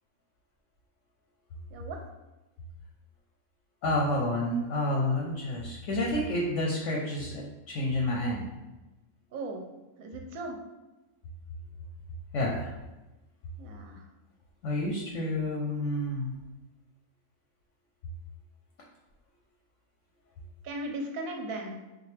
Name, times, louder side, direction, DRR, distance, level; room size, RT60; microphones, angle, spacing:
voice 1, 3.8-8.5 12.3-12.7 14.6-16.3, left 1 dB, 65° left, -2 dB, 0.8 m, -29 dB
voice 2, 9.3-9.6 10.0-10.6 13.6-14.0 20.6-21.8, right 2 dB, 70° right, 2 dB, 0.9 m, -37 dB
3.7 x 2.4 x 3.2 m, 1.1 s
omnidirectional pair, 1.6 m